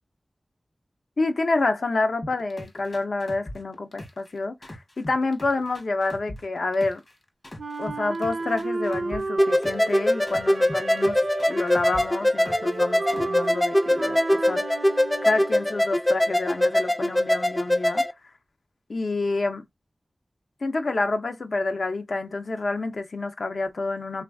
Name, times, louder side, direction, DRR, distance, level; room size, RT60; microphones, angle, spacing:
voice 1, 1.2-7.0 7.8-11.2 11.5-14.6 15.2-18.0 18.9-19.6 20.6-24.2, left 3 dB, 80° left, 0.5 m, -28 dB
sound 1, 2.2-4.3 4.6-7.1 7.4-9.9 10.3-12.8 13.1-13.5, left 1 dB, 50° left, 1.0 m, -40 dB
Wind instrument woodwind instrument, 7.6-15.8, right 3 dB, 75° right, 0.4 m, -33 dB
sound 2, 9.4-18.1, left 1 dB, 15° left, 0.3 m, -23 dB
3.2 x 2.4 x 2.2 m
wide cardioid pair, 65°, 0 cm